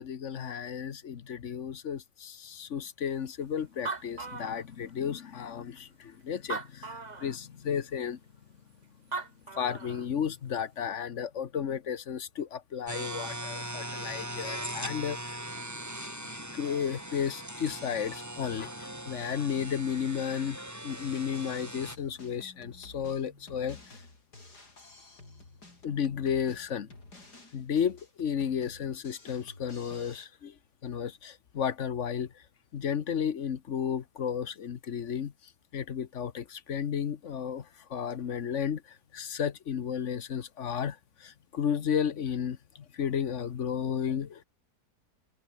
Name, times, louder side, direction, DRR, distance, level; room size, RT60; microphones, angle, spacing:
voice 1, 0.0-8.2 9.5-15.4 16.5-23.8 25.8-26.9 27.5-32.4 32.7-44.4, left 8 dB, 50° left, 1.3 m, -33 dB
Animal, 3.4-3.5 3.7-5.1 5.8-5.9 6.4-7.4 8.8-8.9 9.1-10.1, right 4 dB, 25° right, 1.5 m, -38 dB
sound 1, 12.9-22.0, right 1 dB, 10° right, 3.7 m, -40 dB
Drum kit, 20.9-30.3, left 2 dB, 80° left, 6.4 m, -52 dB
omnidirectional pair, 1.7 m